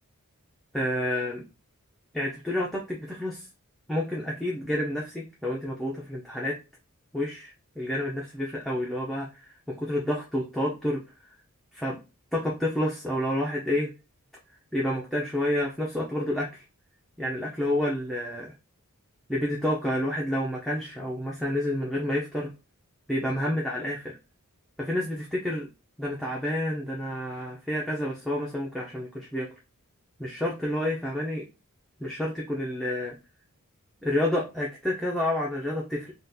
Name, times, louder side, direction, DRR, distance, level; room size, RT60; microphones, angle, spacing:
voice 1, 0.7-1.4 2.1-3.5 3.9-6.6 7.1-11.0 11.7-12.0 12.3-13.9 14.7-16.6 17.2-18.5 19.3-22.5 23.1-24.2 24.8-25.7 26.0-29.5 30.2-31.4 32.0-33.2 34.0-36.1, left 1 dB, ahead, -4 dB, 0.4 m, -29 dB
3.7 x 2.3 x 2.6 m, 0.29 s
head